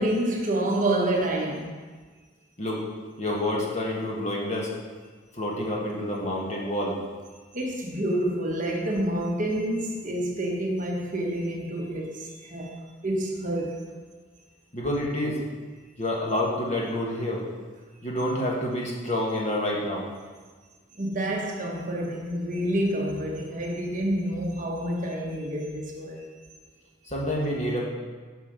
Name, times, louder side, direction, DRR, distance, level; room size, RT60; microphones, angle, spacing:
voice 1, 0.0-1.7 7.5-13.9 20.9-26.3, right 1 dB, 40° right, 1.1 m, -28 dB
voice 2, 3.2-4.7 5.3-6.9 14.7-15.4 16.0-17.4 18.0-20.1 27.1-27.8, left 1 dB, 35° left, 1.5 m, -28 dB
7.6 x 5.5 x 5.2 m
head